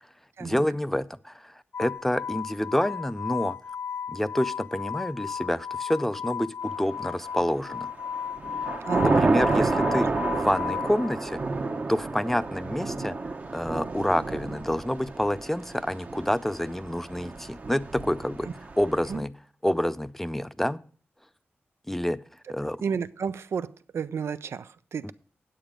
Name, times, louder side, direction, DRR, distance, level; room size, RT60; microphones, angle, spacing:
voice 1, 0.4-3.6 4.1-7.9 9.2-10.1 10.3-11.4 11.9-13.2 13.5-18.5 18.8-19.3 19.6-20.8 21.9-22.2 22.5-22.8, left 1 dB, 5° left, 0.3 m, -28 dB
sound 1, 1.7-11.4 16.0-16.1, left 7 dB, 55° left, 0.6 m, -35 dB
Thunder / Rain, 7.1-7.6 8.0-19.2, right 3 dB, 40° right, 0.8 m, -30 dB
voice 2, 8.9-9.6 18.4-18.5 19.1-19.2 22.8-25.1, right 6 dB, 85° right, 0.4 m, -32 dB
9.0 x 7.9 x 5.0 m
wide cardioid pair, 135°, 4 cm